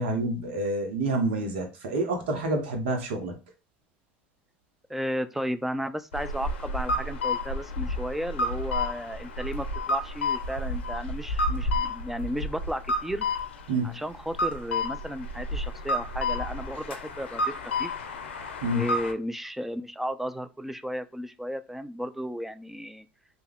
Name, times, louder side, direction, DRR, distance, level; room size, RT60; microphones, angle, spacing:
voice 1, 0.0-3.4 13.7-14.0 18.6-18.9, right 2 dB, 75° right, 0.9 m, -28 dB
voice 2, 4.9-13.3 13.8-17.5 17.8-17.9 18.7-23.1, equal, 5° right, 0.4 m, -34 dB
sound 1, 6.1-19.1, left 2 dB, 85° left, 0.5 m, -31 dB
3.4 x 2.3 x 3.4 m
hypercardioid pair, 75°, 6 cm